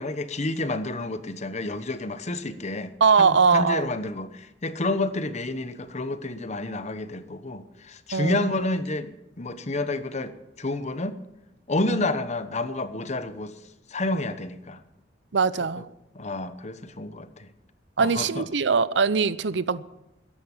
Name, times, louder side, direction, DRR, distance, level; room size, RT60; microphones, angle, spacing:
voice 1, 0.0-11.2 11.7-13.5 13.9-14.8 15.8-15.9 16.1-17.5 18.0-18.4, left 2 dB, 40° left, 1.1 m, -30 dB
voice 2, 3.0-3.9 8.1-8.6 11.9-12.1 15.3-15.9 18.0-19.8, right 5 dB, 80° right, 0.6 m, -22 dB
15.0 x 10.5 x 7.2 m
head